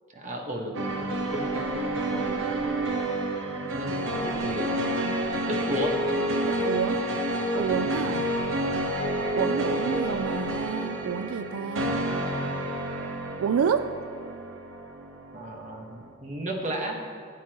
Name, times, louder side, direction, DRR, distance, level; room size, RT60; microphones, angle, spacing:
voice 1, 0.1-1.0 1.3-1.6 3.8-4.7 5.5-6.0 15.3-17.0, right 1 dB, 35° right, 1 dB, 1.4 m, -33 dB
sound 1, 0.7-16.0, right 1 dB, 70° right, 1.1 m, -29 dB
voice 2, 2.1-2.4 6.5-8.3 9.3-12.0 13.4-14.0, right 7 dB, 90° right, 11 dB, 0.4 m, -29 dB
15.5 x 8.6 x 3.0 m, 2.4 s
head